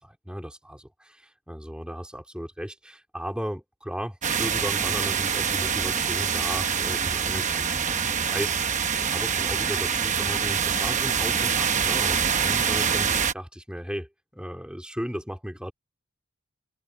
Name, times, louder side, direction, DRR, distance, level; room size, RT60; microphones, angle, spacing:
voice 1, 0.0-8.7 9.0-15.7, equal, 5° right, 3.6 m, -36 dB
sound 1, 4.2-13.3, right 7 dB, 35° right, 1.0 m, -25 dB
head